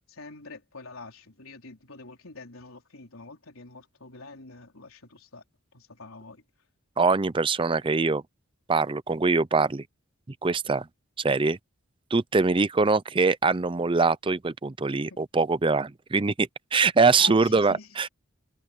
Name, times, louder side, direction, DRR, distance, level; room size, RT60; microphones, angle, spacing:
voice 1, 0.1-5.4 5.7-6.4 15.1-15.2 17.2-18.0, left 3 dB, 90° left, 3.9 m, -45 dB
voice 2, 7.0-8.2 8.7-9.8 10.4-10.9 11.2-11.6 12.1-18.1, right 4 dB, 25° right, 0.5 m, -23 dB
head